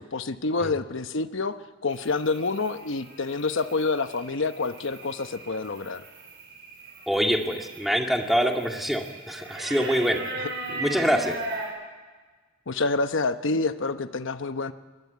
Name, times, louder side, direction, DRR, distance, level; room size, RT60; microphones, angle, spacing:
voice 1, 0.0-1.6 1.8-6.0 10.3-10.5 12.7-14.7, left 3 dB, 65° left, 10 dB, 1.0 m, -27 dB
sound 1, 1.9-11.7, right 2 dB, 60° right, 7.5 m, -39 dB
voice 2, 7.1-10.2 10.7-11.4, equal, ahead, 2 dB, 2.2 m, -25 dB
21.5 x 20.5 x 9.4 m, 1.4 s
head